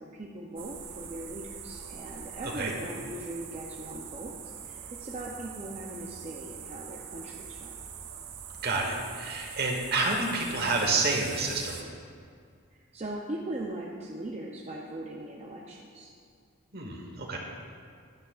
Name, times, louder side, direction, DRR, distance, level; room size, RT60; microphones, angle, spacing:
voice 1, 0.0-4.3 4.6-7.8 12.7-16.1, right 1 dB, 30° right, -2 dB, 0.6 m, -40 dB
sound 1, 0.6-11.8, right 7 dB, 85° right, 0.9 m, -43 dB
voice 2, 8.6-11.8 16.7-17.4, right 3 dB, 45° right, 1 dB, 1.2 m, -29 dB
12.0 x 11.0 x 2.4 m, 2.2 s
head